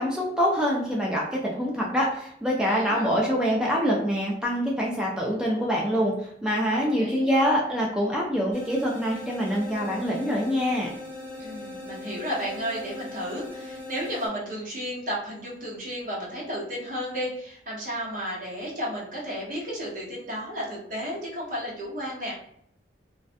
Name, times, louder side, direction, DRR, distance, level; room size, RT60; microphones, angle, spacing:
voice 1, 0.0-6.1 6.4-10.9, equal, 5° right, -3 dB, 0.4 m, -25 dB
voice 2, 2.6-3.2 6.7-7.3 11.4-22.3, equal, 50° right, -4 dB, 0.9 m, -33 dB
sound 1, 8.5-14.3, left 2 dB, 10° left, 0.9 m, -39 dB
2.5 x 2.1 x 2.5 m, 0.68 s
head